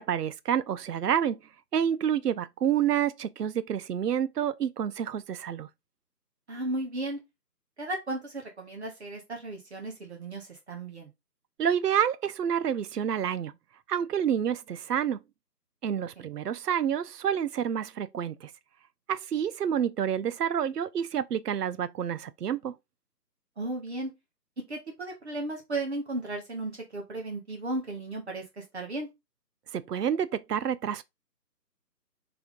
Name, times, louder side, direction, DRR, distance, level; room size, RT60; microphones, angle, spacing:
voice 1, 0.0-1.4 1.7-5.7 11.6-13.5 13.9-15.2 15.8-18.5 19.1-22.7 29.7-31.0, right 9 dB, 70° right, 0.6 m, -28 dB
voice 2, 6.5-7.2 7.8-11.1 16.2-16.3 23.6-24.1 24.7-29.1, right 2 dB, 40° right, 1.2 m, -35 dB
3.5 x 3.4 x 3.6 m
figure-of-eight pair, 155°, 49 cm